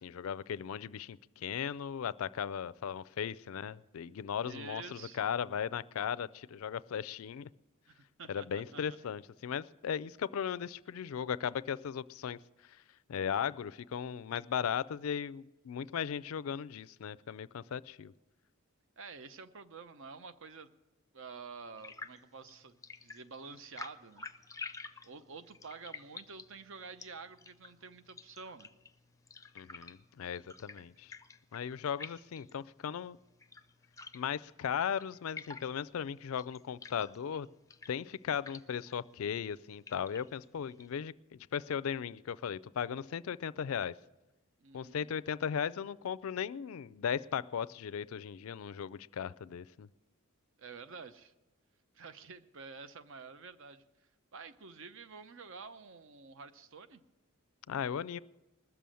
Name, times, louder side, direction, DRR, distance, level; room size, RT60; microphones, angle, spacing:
voice 1, 0.0-7.5 8.3-12.4 13.1-18.1 29.5-31.1 31.5-33.2 34.1-37.5 37.9-43.9 44.7-49.9 57.7-58.2, left 8 dB, 70° left, 19 dB, 0.4 m, -37 dB
voice 2, 4.4-5.2 7.9-9.0 19.0-20.7 21.1-24.2 24.5-24.7 25.0-28.7 32.0-32.1 44.6-45.1 50.6-51.3 51.9-53.8 54.3-57.0, right 4 dB, 60° right, 11 dB, 0.7 m, -49 dB
sound 1, 21.8-40.9, left 4 dB, 15° left, 0.5 m, -51 dB
20.0 x 7.0 x 7.6 m, 1.0 s
head